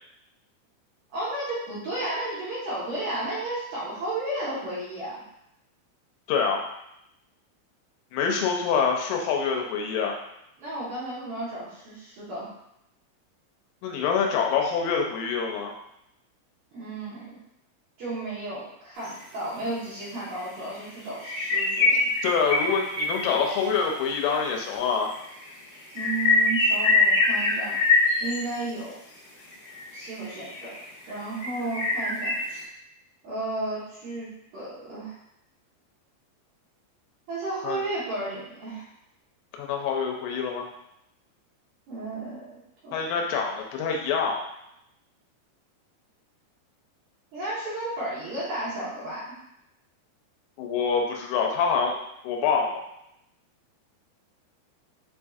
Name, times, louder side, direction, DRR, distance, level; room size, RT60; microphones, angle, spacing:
voice 1, 1.1-5.2 10.6-12.5 16.7-17.4 18.0-22.0 25.9-27.8 28.2-29.0 29.9-30.7 31.1-32.3 33.2-35.2 37.3-38.9 41.9-42.5 42.8-43.1 47.3-49.3, right 2 dB, 75° right, -9 dB, 2.0 m, -33 dB
voice 2, 6.3-6.6 8.1-10.2 13.8-15.7 22.2-25.1 37.6-37.8 39.6-40.7 42.9-44.4 50.6-52.0 52.2-52.9, left 6 dB, 90° left, 1 dB, 3.1 m, -26 dB
sound 1, 19.0-19.1 19.6-19.7 20.3-20.4 20.7-20.9 21.1-23.9 24.8-24.9 25.1-28.7 29.4-30.9 31.4-32.6, left 3 dB, 65° left, 2.3 m, -24 dB
7.0 x 2.6 x 2.4 m, 0.81 s
omnidirectional pair, 5.5 m